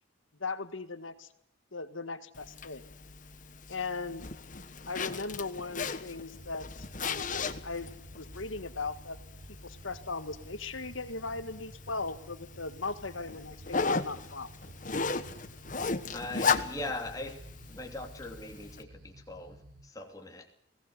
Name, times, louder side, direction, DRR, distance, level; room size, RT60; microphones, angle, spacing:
voice 1, 0.4-1.3 1.7-2.8 3.7-4.3 4.9-9.2 9.6-14.5, left 3 dB, 85° left, 10 dB, 2.0 m, -38 dB
Zipper (clothing), 2.4-18.8, left 4 dB, 40° left, 1.3 m, -37 dB
sound 1, 6.3-19.9, right 1 dB, 65° right, 1.6 m, -52 dB
voice 2, 16.1-17.4 17.7-20.5, left 2 dB, 20° left, 3 dB, 3.1 m, -40 dB
21.5 x 18.5 x 8.3 m, 0.72 s
head